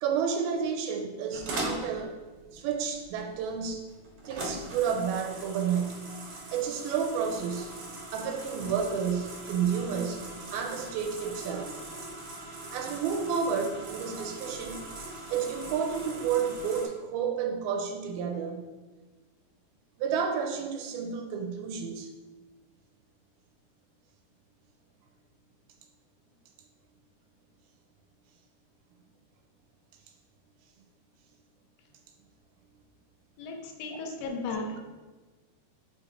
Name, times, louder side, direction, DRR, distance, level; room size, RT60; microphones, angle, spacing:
voice 1, 0.0-2.1 2.5-3.9 4.3-7.8 8.1-10.2 10.5-11.8 12.7-14.8 15.3-18.7 20.0-22.1 33.9-34.2, right 7 dB, 85° right, 4 dB, 2.5 m, -31 dB
sound 1, 1.3-16.9, right 2 dB, 65° right, 1.4 m, -41 dB
voice 2, 33.4-34.8, left 3 dB, 85° left, 3 dB, 2.8 m, -35 dB
6.4 x 5.7 x 3.3 m, 1.3 s
omnidirectional pair, 4.5 m